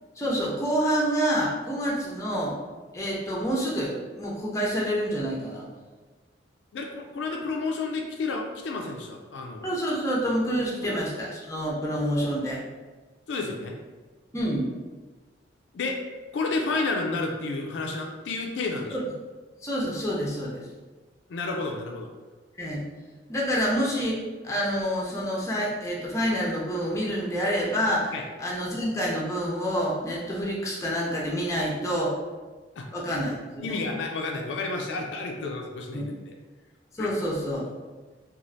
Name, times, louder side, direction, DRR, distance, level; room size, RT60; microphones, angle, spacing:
voice 1, 0.2-2.5 2.9-5.6 9.6-12.6 14.3-14.7 18.9-19.0 19.6-20.7 22.6-22.8 23.3-24.2 24.4-28.1 28.4-32.2 32.9-33.8 35.4-35.5 35.9-36.1 36.9-37.6, equal, 15° left, -4 dB, 0.5 m, -27 dB
voice 2, 6.7-9.7 10.8-11.0 13.3-13.7 15.7-16.0 16.3-19.0 21.3-22.1 28.1-28.2 32.8-32.9 33.6-36.0 37.0-37.1, left 3 dB, 70° left, 2 dB, 0.4 m, -30 dB
3.1 x 2.3 x 2.6 m, 1.3 s
head